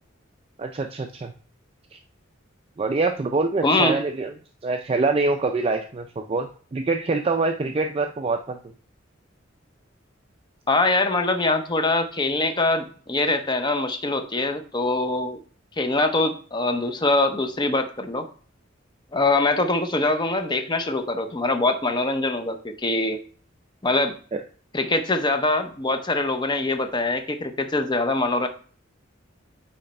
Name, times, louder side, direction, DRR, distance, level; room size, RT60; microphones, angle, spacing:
voice 1, 0.6-1.3 1.9-2.0 2.8-4.3 4.6-8.6 24.3-24.4, right 3 dB, 30° right, 5 dB, 0.4 m, -25 dB
voice 2, 3.6-4.0 10.7-15.4 15.8-18.3 19.1-23.2 23.8-24.2 24.7-28.5, left 2 dB, 25° left, 7 dB, 0.7 m, -23 dB
9.1 x 3.3 x 4.3 m, 0.43 s
head